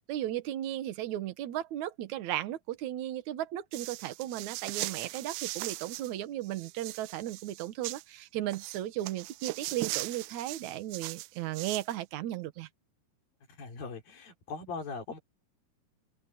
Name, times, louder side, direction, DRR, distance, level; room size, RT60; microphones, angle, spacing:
voice 1, 0.1-12.7, right 13 dB, 65° right, 2.1 m, -35 dB
sound 1, 3.7-6.1 6.4-8.0 8.5-11.9, right 20 dB, 85° right, 2.5 m, -39 dB
voice 2, 13.5-15.2, left 4 dB, 60° left, 5.7 m, -40 dB
open air
omnidirectional pair, 4.7 m